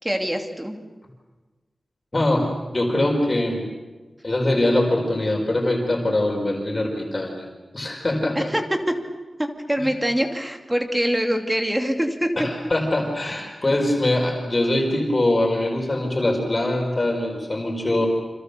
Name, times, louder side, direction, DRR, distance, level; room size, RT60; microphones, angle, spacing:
voice 1, 0.0-0.8 8.3-8.6 8.9-9.0 9.4-12.3, equal, 10° right, 4 dB, 2.6 m, -24 dB
voice 2, 2.1-3.6 4.2-7.5 7.7-8.5 9.8-9.9 12.4-18.1, left 1 dB, 30° left, 1 dB, 4.8 m, -23 dB
28.5 x 27.0 x 6.9 m, 1.3 s
wide cardioid pair, 125°, 0 cm